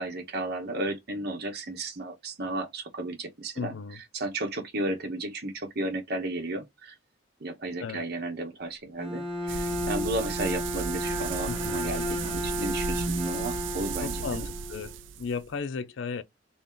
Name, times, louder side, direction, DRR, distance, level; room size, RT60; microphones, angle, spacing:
voice 1, 0.0-3.7 4.1-6.9 7.4-14.5, right 2 dB, 60° right, 1.1 m, -33 dB
voice 2, 3.6-4.0 7.8-8.0 11.5-11.9 14.0-16.2, left 5 dB, 85° left, 0.5 m, -35 dB
Bowed string instrument, 9.0-15.0, left 1 dB, 30° right, 1.4 m, -33 dB
sound 1, 9.5-15.5, right 7 dB, 80° right, 0.4 m, -35 dB
3.1 x 2.7 x 3.6 m
head